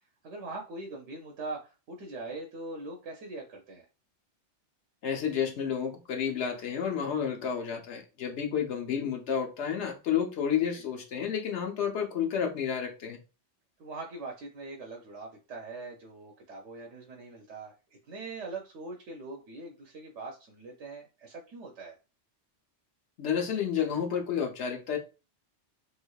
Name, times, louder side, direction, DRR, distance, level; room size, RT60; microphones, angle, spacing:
voice 1, 0.2-3.8 10.7-10.8 13.8-17.7 18.1-21.9, right 3 dB, 80° right, 1.0 m, -42 dB
voice 2, 5.0-13.2 23.2-25.0, left 8 dB, 70° left, 1.0 m, -30 dB
3.4 x 3.2 x 2.3 m
omnidirectional pair, 1.2 m